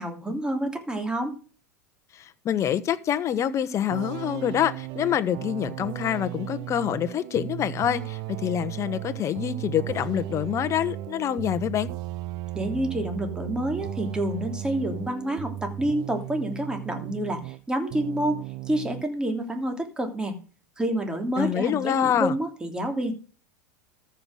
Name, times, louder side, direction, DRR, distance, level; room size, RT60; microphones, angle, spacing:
voice 1, 0.0-1.4 12.5-18.4 18.7-20.3 20.8-23.1, right 1 dB, 10° right, 3.0 m, -28 dB
voice 2, 2.1-11.9 21.4-22.4, left 10 dB, 35° left, 1.2 m, -26 dB
sound 1, 3.9-17.6 17.9-19.1, right 15 dB, 50° right, 0.7 m, -36 dB
13.5 x 5.9 x 6.4 m
hypercardioid pair, 95°, 9 cm